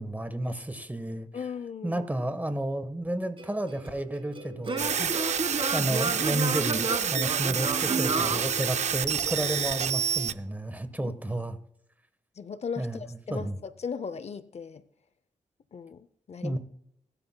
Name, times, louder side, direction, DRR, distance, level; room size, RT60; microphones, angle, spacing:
voice 1, 0.0-1.3 1.8-5.1 5.7-11.6 12.8-13.0 13.3-13.5 16.4-16.6, right 1 dB, 15° right, 11 dB, 1.3 m, -32 dB
voice 2, 1.3-2.1 11.0-11.4 12.4-14.8 15.7-16.6, left 6 dB, 55° left, 14 dB, 0.6 m, -38 dB
Singing / Plucked string instrument, 3.4-9.2, right 3 dB, 40° right, 1.6 m, -32 dB
sound 1, 4.8-10.3, right 7 dB, 60° right, 0.5 m, -28 dB
21.5 x 11.5 x 2.3 m, 0.74 s
wide cardioid pair, 95°, 13 cm